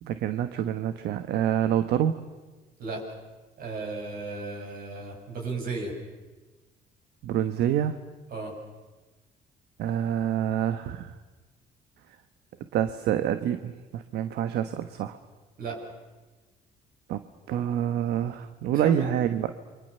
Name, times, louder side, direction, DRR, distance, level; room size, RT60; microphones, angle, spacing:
voice 1, 0.0-2.2 7.2-8.0 9.8-11.1 12.7-15.2 17.1-17.2 17.5-19.5, right 10 dB, 75° right, 10 dB, 1.2 m, -27 dB
voice 2, 3.6-5.9 8.3-8.5 15.6-15.8 18.7-19.2, right 3 dB, 60° right, 2 dB, 7.7 m, -34 dB
29.0 x 24.5 x 6.9 m, 1.2 s
cardioid pair, 110°, 17 cm